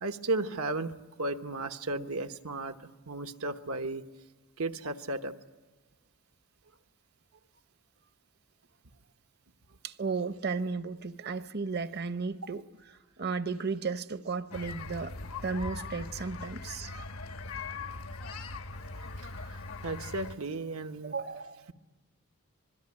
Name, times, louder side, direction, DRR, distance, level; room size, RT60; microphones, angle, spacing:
voice 1, 0.0-4.0 4.6-5.4 18.8-18.9 19.2-21.2, right 2 dB, 85° right, 1.2 m, -35 dB
voice 2, 9.8-12.6 13.2-15.1 15.4-16.9 21.0-21.7, right 4 dB, 50° right, 0.8 m, -34 dB
sound 1, 14.5-20.4, left 3 dB, 80° left, 1.1 m, -40 dB
25.5 x 22.5 x 9.7 m
head